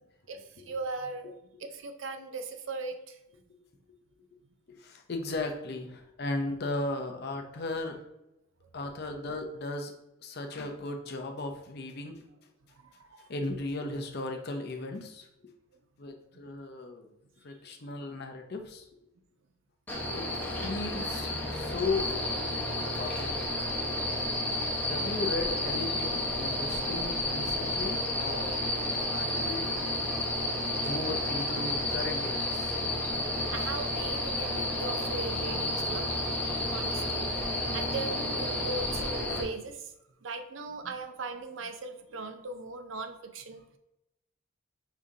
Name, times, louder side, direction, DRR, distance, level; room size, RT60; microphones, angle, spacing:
voice 1, 0.3-1.3 1.6-3.2 12.8-13.3 29.0-29.1 30.3-30.4 33.5-37.3 37.7-39.9 40.2-43.8, right 3 dB, 65° right, 7 dB, 0.5 m, -39 dB
voice 2, 4.8-8.0 8.7-9.9 10.2-12.2 13.3-15.5 16.0-17.1 17.4-18.9 20.1-20.3 20.6-22.2 23.0-23.7 24.9-29.7 30.6-32.8, left 2 dB, 50° left, 4 dB, 0.6 m, -36 dB
sound 1, 19.9-39.4, left 1 dB, 10° left, 0.7 m, -31 dB
5.1 x 2.8 x 3.6 m, 0.88 s
head